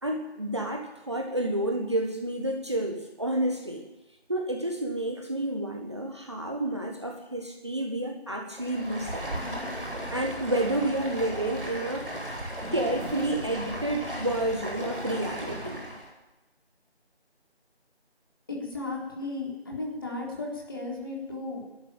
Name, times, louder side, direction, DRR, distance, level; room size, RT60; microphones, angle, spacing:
voice 1, 0.0-3.8 4.3-9.3 10.1-12.1 12.7-15.8, right 1 dB, 25° right, 2 dB, 1.5 m, -30 dB
Stream, 8.5-16.1, equal, ahead, 2.2 m, -36 dB
voice 2, 18.5-21.6, left 2 dB, 20° left, -2 dB, 3.8 m, -35 dB
23.0 x 12.5 x 9.2 m, 1.0 s
figure-of-eight pair, 170°, 32 cm